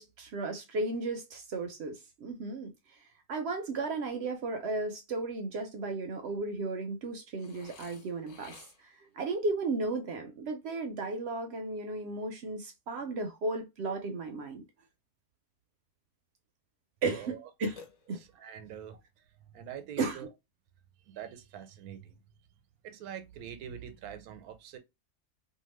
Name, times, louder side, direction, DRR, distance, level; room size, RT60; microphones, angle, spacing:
voice 1, 0.0-3.0 3.3-14.6 17.0-17.8 18.1-18.2 20.0-20.2, right 3 dB, 65° right, 0.6 m, -35 dB
Burping eructation, 7.4-9.1 17.8-18.5, left 5 dB, 65° left, 1.0 m, -53 dB
voice 2, 17.1-17.5 18.2-19.2 19.5-20.3 21.0-22.2 22.8-24.8, right 9 dB, 85° right, 1.1 m, -45 dB
2.7 x 2.2 x 3.1 m
omnidirectional pair, 1.5 m